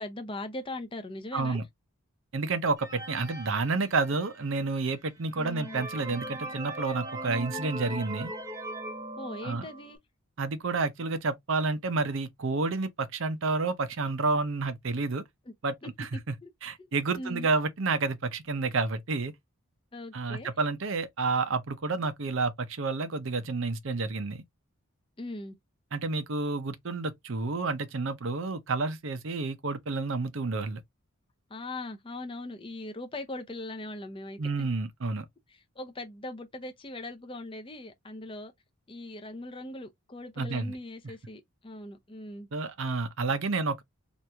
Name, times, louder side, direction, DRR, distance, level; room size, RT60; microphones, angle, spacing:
voice 1, 0.0-1.6 5.4-5.8 9.2-10.0 15.5-15.6 15.8-16.5 17.2-17.5 19.9-20.5 25.2-25.6 31.5-34.7 35.5-38.5 38.9-42.5, left 2 dB, 25° left, 0.6 m, -40 dB
voice 2, 1.3-1.6 2.3-8.3 9.4-9.7 10.4-15.2 15.6-16.3 16.6-19.3 20.1-24.4 25.9-30.8 34.4-35.3 40.4-40.7 42.5-43.8, right 3 dB, 55° right, 0.6 m, -30 dB
sound 1, 2.8-4.4 5.0-5.1 5.4-10.0, right 1 dB, 15° right, 0.7 m, -39 dB
2.9 x 2.6 x 3.3 m
head